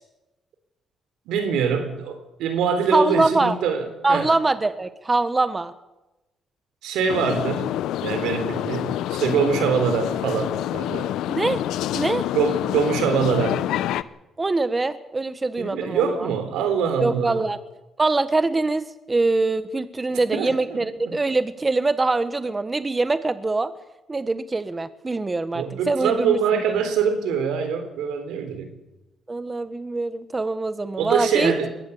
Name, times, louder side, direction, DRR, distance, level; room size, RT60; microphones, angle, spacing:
voice 1, 1.3-4.3 6.8-7.7 8.0-11.1 12.3-13.6 15.6-17.4 20.3-21.2 25.5-28.7 31.0-31.7, right 6 dB, 90° right, 8 dB, 3.7 m, -24 dB
voice 2, 2.9-3.6 4.0-5.7 11.3-11.6 11.9-12.3 14.4-16.3 17.0-17.6 18.0-23.7 24.1-26.4 29.3-31.5, right 3 dB, 25° right, 12 dB, 1.2 m, -23 dB
sound 1, 7.1-14.0, left 12 dB, 85° left, 0.7 m, -27 dB
21.5 x 15.0 x 8.5 m, 1.0 s
cardioid pair, 90°, 0 cm